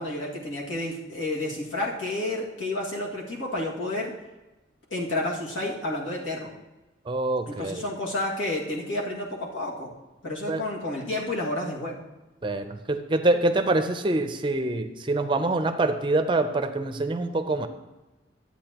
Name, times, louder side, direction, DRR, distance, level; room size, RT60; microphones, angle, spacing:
voice 1, 0.0-4.1 4.9-6.5 7.5-9.9 10.2-12.0, left 2 dB, 90° left, -3 dB, 2.0 m, -30 dB
voice 2, 7.1-7.8 10.5-10.6 12.4-17.7, right 2 dB, 25° right, 9 dB, 0.5 m, -25 dB
12.0 x 8.4 x 2.9 m, 1.1 s
head